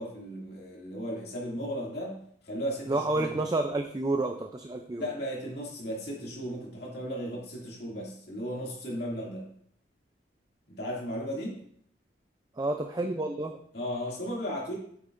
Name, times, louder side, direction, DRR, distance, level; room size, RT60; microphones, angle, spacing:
voice 1, 0.0-3.3 5.0-9.5 10.7-11.6 13.7-14.8, equal, 60° left, -3 dB, 2.5 m, -35 dB
voice 2, 2.9-5.0 12.6-13.6, right 2 dB, 20° right, 5 dB, 0.4 m, -29 dB
8.3 x 8.0 x 2.6 m, 0.64 s
head